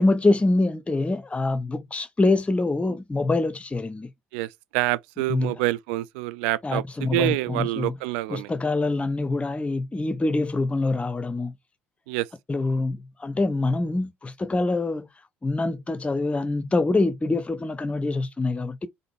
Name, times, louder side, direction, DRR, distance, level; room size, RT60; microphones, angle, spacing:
voice 1, 0.0-4.1 5.3-5.6 6.6-7.9 8.3-11.5 12.5-15.1 15.4-18.9, left 2 dB, 20° left, 0.7 m, -25 dB
voice 2, 4.3-8.5 12.1-12.3, right 17 dB, 75° right, 0.4 m, -27 dB
3.9 x 3.8 x 3.4 m
hypercardioid pair, 55°, 6 cm